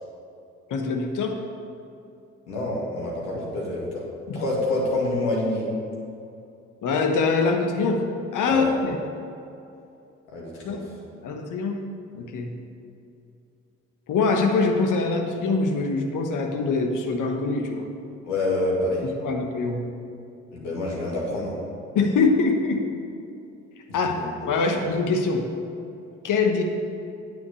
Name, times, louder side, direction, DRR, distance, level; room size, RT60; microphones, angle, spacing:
voice 1, 0.7-1.4 4.3-4.4 6.8-8.1 8.3-9.0 10.6-10.8 11.2-11.9 12.1-12.6 14.1-17.9 19.0-19.9 21.9-22.8 23.9-25.5 26.2-26.6, left 4 dB, 55° left, 3 dB, 1.2 m, -24 dB
voice 2, 2.5-4.0 4.3-5.7 8.4-8.7 10.3-10.8 18.2-19.0 20.5-21.6 24.1-24.3 24.6-24.7, left 2 dB, 75° left, -4 dB, 2.1 m, -27 dB
9.3 x 5.9 x 6.9 m, 2.7 s
figure-of-eight pair, 45°, 37 cm